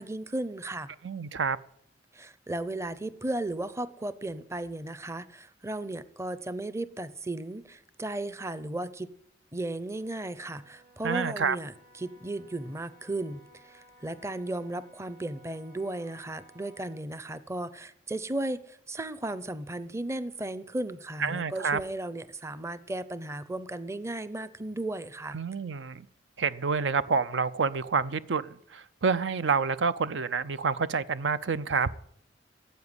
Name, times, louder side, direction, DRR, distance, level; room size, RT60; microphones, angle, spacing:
voice 1, 0.0-0.9 2.1-9.1 9.5-11.7 12.0-25.4, right 2 dB, 15° right, 0.6 m, -35 dB
voice 2, 1.0-1.6 11.0-11.6 21.2-21.8 25.3-26.1 26.4-31.9, right 5 dB, 75° right, 0.6 m, -28 dB
Wind instrument woodwind instrument, 9.9-17.1, right 1 dB, 60° right, 6.3 m, -58 dB
15.0 x 8.1 x 9.7 m
head